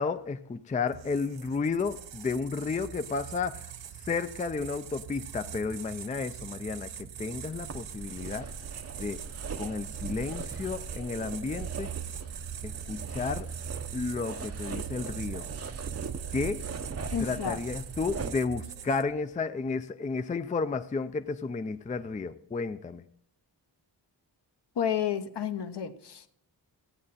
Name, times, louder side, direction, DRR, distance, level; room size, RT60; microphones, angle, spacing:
voice 1, 0.0-3.7 4.0-8.5 9.0-9.2 9.6-11.9 12.6-13.5 13.9-15.5 16.3-16.6 17.2-23.0, left 4 dB, 20° left, 0.4 m, -32 dB
sound 1, 0.9-19.2, right 9 dB, 80° right, 0.7 m, -42 dB
sound 2, 7.5-18.3, right 5 dB, 35° right, 0.6 m, -40 dB
voice 2, 17.1-17.6 24.8-26.3, left 8 dB, 65° left, 1.0 m, -31 dB
15.0 x 8.6 x 4.1 m
wide cardioid pair, 110°, 44 cm